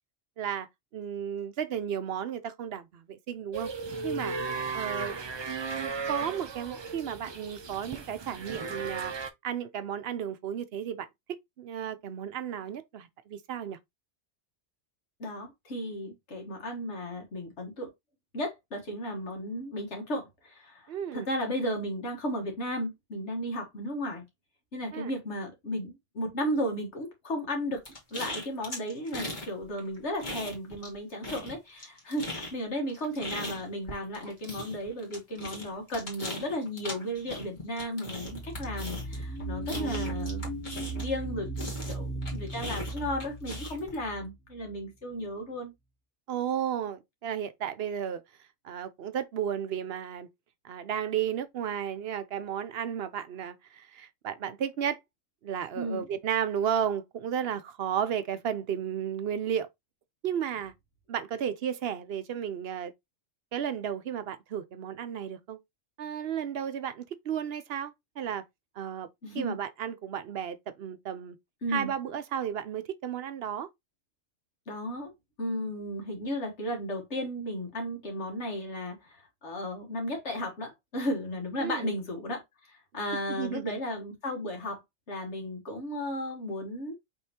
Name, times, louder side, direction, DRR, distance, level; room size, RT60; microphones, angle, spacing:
voice 1, 0.4-3.7 4.0-4.4 4.7-5.1 5.4-9.1 9.4-13.8 20.9-21.3 24.9-25.1 39.7-40.1 46.3-48.2 48.6-50.3 50.6-55.0 55.4-59.7 60.2-60.7 61.1-62.9 63.5-65.6 66.0-68.4 68.8-69.1 69.3-71.4 71.7-73.7 81.6-81.9 83.3-83.8, right 9 dB, 65° right, 0.8 m, -33 dB
sound 1, 3.5-9.3, right 4 dB, 40° right, 0.4 m, -36 dB
voice 2, 15.2-17.9 18.3-24.2 24.7-27.8 28.1-40.6 40.9-41.5 41.9-45.7 55.7-56.1 69.2-69.6 71.6-71.9 74.7-75.1 75.4-84.8 85.1-86.9, equal, 75° left, 1.6 m, -34 dB
sound 2, 27.8-29.5 29.8-31.0 31.2-41.2 41.6-43.9, left 1 dB, 40° left, 1.8 m, -39 dB
sound 3, 38.2-44.8, right 2 dB, 5° left, 0.9 m, -37 dB
5.2 x 3.5 x 2.9 m
omnidirectional pair, 1.2 m